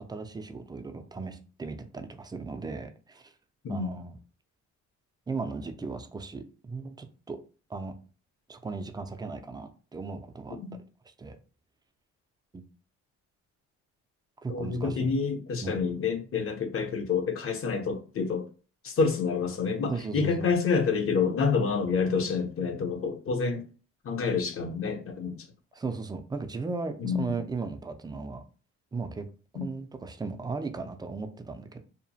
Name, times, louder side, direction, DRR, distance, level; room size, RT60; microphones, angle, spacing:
voice 1, 0.1-3.3 3.7-4.2 5.3-7.4 7.7-7.9 8.5-10.8 11.2-11.4 12.5-12.6 14.4-15.1 15.6-16.0 19.9-20.5 25.7-28.4 28.9-29.3 29.6-31.8, right 4 dB, 15° right, 0.3 m, -36 dB
voice 2, 14.5-18.5 18.8-23.7 24.0-25.4 27.0-27.3 29.5-29.7, left 5 dB, 45° left, 0.7 m, -28 dB
2.8 x 2.1 x 2.7 m
cardioid pair, 90°, 30 cm